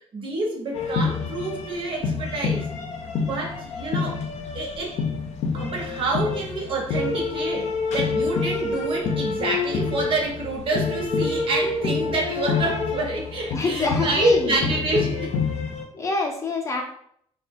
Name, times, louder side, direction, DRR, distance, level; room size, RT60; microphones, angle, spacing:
voice 1, 0.1-2.7 3.2-4.2 4.5-5.0 5.5-15.3, right 2 dB, 50° right, -1 dB, 0.7 m, -27 dB
sound 1, 0.7-15.8, left 4 dB, 80° left, 0.5 m, -27 dB
voice 2, 13.5-14.7 15.9-16.8, left 3 dB, 30° left, 0 dB, 0.5 m, -26 dB
3.1 x 2.1 x 2.5 m, 0.67 s
cardioid pair, 145°, 11 cm